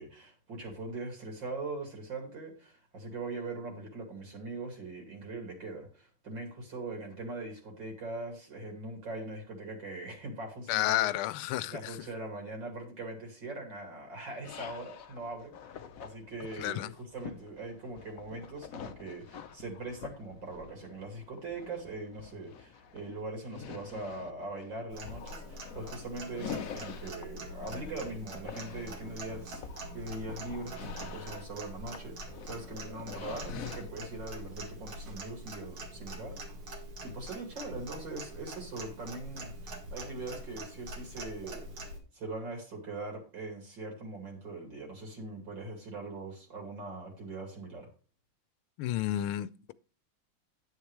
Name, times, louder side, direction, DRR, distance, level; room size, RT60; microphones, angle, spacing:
voice 1, 0.0-11.0 11.7-29.6 29.9-36.4 37.0-41.7 42.1-47.9, right 2 dB, 60° right, 3.3 m, -41 dB
voice 2, 10.7-12.0 16.6-16.9 48.8-49.7, left 13 dB, 85° left, 1.5 m, -31 dB
sound 1, 14.4-34.1, left 7 dB, 60° left, 0.9 m, -47 dB
Clock, 24.9-42.0, right 1 dB, 75° right, 2.8 m, -44 dB
9.9 x 8.7 x 3.2 m
omnidirectional pair, 2.3 m